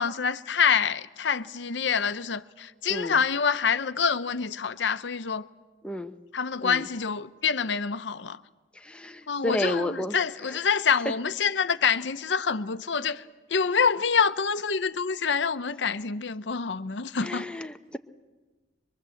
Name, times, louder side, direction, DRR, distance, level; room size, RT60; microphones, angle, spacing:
voice 1, 0.0-5.5 6.3-8.4 9.3-13.2 13.5-17.5, left 6 dB, 75° left, 0.8 m, -26 dB
voice 2, 5.8-6.2 6.6-6.9 8.7-10.2 10.5-10.6 17.2-18.0, left 1 dB, 5° left, 0.8 m, -32 dB
24.0 x 23.0 x 7.8 m
head